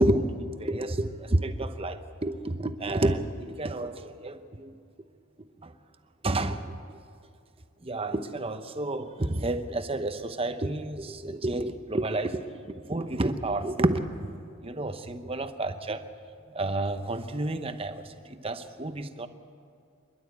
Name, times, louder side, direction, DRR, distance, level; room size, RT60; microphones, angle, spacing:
voice 1, 0.0-4.8 5.6-5.7 6.2-6.7 7.8-14.4 14.6-16.0 16.5-19.3, right 1 dB, 25° right, 9 dB, 0.8 m, -30 dB
27.0 x 11.5 x 8.2 m, 2.4 s
head